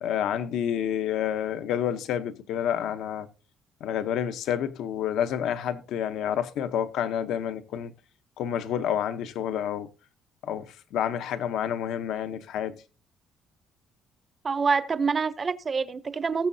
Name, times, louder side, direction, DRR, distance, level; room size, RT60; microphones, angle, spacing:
voice 1, 0.0-3.3 3.8-7.9 8.4-9.9 10.4-12.8, left 9 dB, 70° left, 0.8 m, -29 dB
voice 2, 14.4-16.5, right 5 dB, 25° right, 0.6 m, -26 dB
19.0 x 7.4 x 2.7 m
cardioid pair, 160°, 0 cm